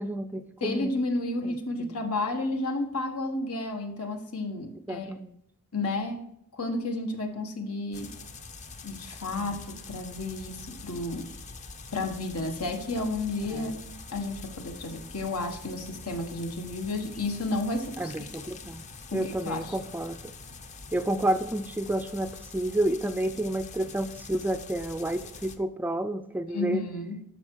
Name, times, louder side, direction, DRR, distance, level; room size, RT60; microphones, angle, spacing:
voice 1, 0.0-0.9 1.4-1.9 4.9-5.4 9.4-9.6 13.5-13.7 18.0-18.9 19.1-20.3 20.9-26.8, right 1 dB, 10° right, 9 dB, 0.4 m, -30 dB
voice 2, 0.6-5.1 5.7-6.2 6.5-8.1 8.8-11.3 11.9-13.8 14.1-18.5 19.1-19.7 26.5-27.2, left 2 dB, 80° left, 4 dB, 1.5 m, -32 dB
sound 1, 7.9-25.6, left 4 dB, 30° left, 0.7 m, -45 dB
12.5 x 5.7 x 4.7 m, 0.74 s
head